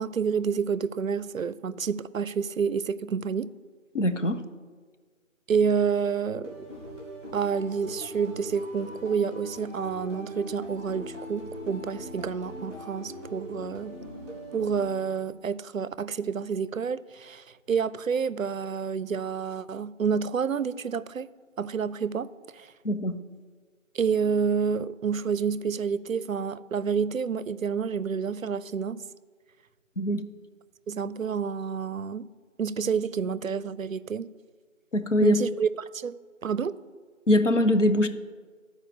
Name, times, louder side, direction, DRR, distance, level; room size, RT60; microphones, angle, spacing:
voice 1, 0.0-3.5 5.5-6.7 7.3-14.0 14.5-21.3 21.6-22.7 23.9-29.0 30.9-32.3 32.6-34.3 35.2-36.2 36.4-36.8, right 6 dB, 75° right, 0.5 m, -29 dB
voice 2, 3.9-4.4 22.8-23.2 30.0-30.2 34.9-35.4 37.3-38.1, left 1 dB, 60° left, 0.9 m, -22 dB
sound 1, 6.4-15.4, equal, 20° left, 2.6 m, -41 dB
11.5 x 4.9 x 6.7 m
figure-of-eight pair, 175°, 41 cm